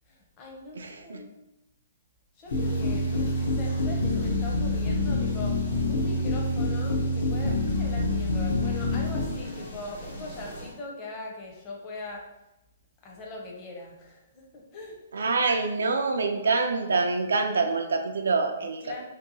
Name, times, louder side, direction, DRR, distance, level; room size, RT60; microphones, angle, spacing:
voice 1, 0.1-1.3 2.4-12.3 13.0-15.0 18.6-19.0, left 2 dB, 30° left, -1 dB, 0.6 m, -41 dB
voice 2, 0.8-1.2 15.1-19.0, right 4 dB, 85° right, 4 dB, 0.3 m, -26 dB
sound 1, 2.4-10.7, equal, 90° left, 1.2 m, -42 dB
sound 2, 2.5-9.4, left 2 dB, 70° left, 0.6 m, -26 dB
2.7 x 2.2 x 2.6 m, 0.92 s
hypercardioid pair, 145°, 0 cm